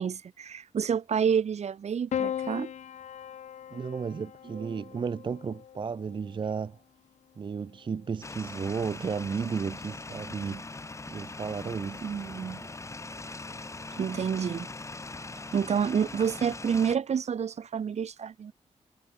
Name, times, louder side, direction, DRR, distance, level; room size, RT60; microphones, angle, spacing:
voice 1, 0.0-2.7 4.5-4.8 12.0-12.7 14.0-14.7 15.5-18.5, right 7 dB, 65° right, 1.4 m, -29 dB
Piano, 2.1-6.6 7.8-8.5, left 9 dB, 70° left, 0.8 m, -38 dB
voice 2, 3.7-6.8 7.4-10.6 11.1-12.0, right 6 dB, 40° right, 0.5 m, -33 dB
sound 1, 8.2-17.0, left 3 dB, 25° left, 1.0 m, -41 dB
cardioid pair, 65°, 12 cm